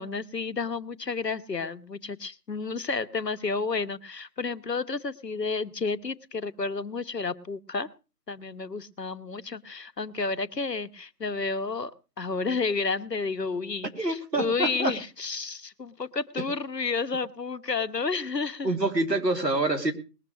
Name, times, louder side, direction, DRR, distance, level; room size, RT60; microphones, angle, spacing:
voice 1, 0.0-7.9 8.3-11.9 12.2-18.7, left 4 dB, 80° left, 11 dB, 1.2 m, -31 dB
voice 2, 14.0-14.9 18.6-19.9, right 2 dB, 85° right, 5 dB, 3.0 m, -26 dB
20.5 x 6.9 x 6.3 m, 0.34 s
figure-of-eight pair, 155°, 49 cm